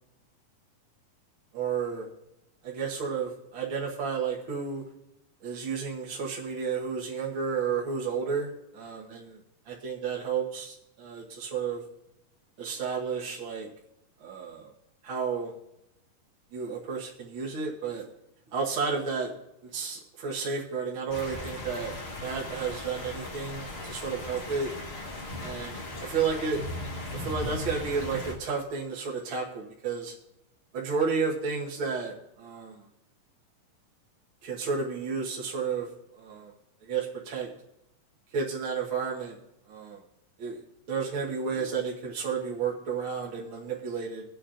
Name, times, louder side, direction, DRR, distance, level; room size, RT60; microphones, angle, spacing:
voice 1, 1.5-2.1 2.6-4.8 5.4-9.4 9.7-11.8 12.6-13.7 14.2-14.7 15.0-15.5 16.5-18.0 18.5-19.3 19.6-21.9 22.2-24.7 25.4-26.6 27.0-30.1 30.7-32.8 34.4-35.9 36.2-36.5 36.8-37.5 38.3-39.4 39.7-40.0 40.4-40.6 40.9-44.2, right 5 dB, 55° right, -3 dB, 1.6 m, -32 dB
sound 1, 21.1-28.3, left 2 dB, 60° left, 0.6 m, -38 dB
23.5 x 8.6 x 2.5 m, 0.88 s
omnidirectional pair, 3.8 m